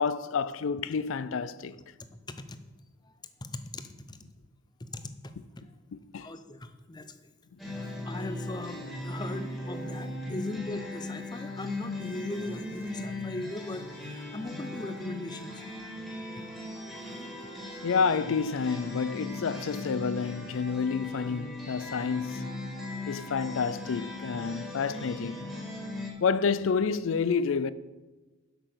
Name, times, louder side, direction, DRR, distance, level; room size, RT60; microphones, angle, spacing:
voice 1, 0.0-1.7 5.9-6.3 10.3-10.4 17.8-22.5 23.1-25.4 26.2-27.7, left 5 dB, 65° left, 0.4 m, -29 dB
voice 2, 3.5-4.2 4.8-5.3 6.2-7.1 8.0-15.5, left 1 dB, 20° left, 0.6 m, -39 dB
sound 1, 7.6-26.1, left 2 dB, ahead, 1.9 m, -39 dB
7.9 x 6.0 x 6.6 m
head